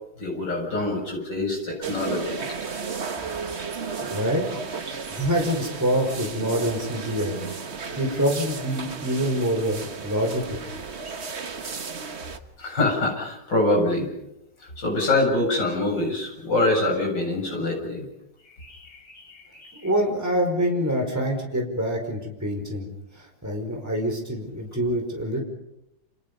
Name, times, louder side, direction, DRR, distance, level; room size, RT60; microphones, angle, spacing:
voice 1, 0.2-2.4 12.6-14.1 14.8-18.0 18.6-19.8, left 2 dB, 65° left, 1 dB, 8.1 m, -25 dB
sound 1, 1.8-12.4, right 5 dB, 40° right, 1.5 m, -34 dB
voice 2, 4.1-4.9 5.1-7.4 8.0-10.6 19.8-22.9 23.1-25.4, equal, 10° right, 2 dB, 5.0 m, -26 dB
29.5 x 28.0 x 5.5 m, 0.84 s
omnidirectional pair, 2.0 m